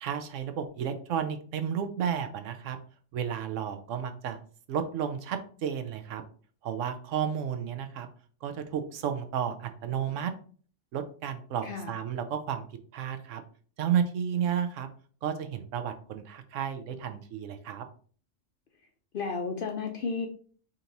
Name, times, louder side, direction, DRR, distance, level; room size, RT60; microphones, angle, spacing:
voice 1, 0.0-2.8 3.1-4.4 4.7-6.2 6.6-8.1 8.4-10.3 10.9-12.7 12.9-13.4 13.8-14.9 15.2-17.9, right 8 dB, 75° right, 8 dB, 0.9 m, -32 dB
voice 2, 11.6-11.9 19.1-20.3, left 4 dB, 60° left, 3 dB, 0.6 m, -32 dB
5.1 x 2.9 x 2.6 m, 0.43 s
omnidirectional pair, 1.3 m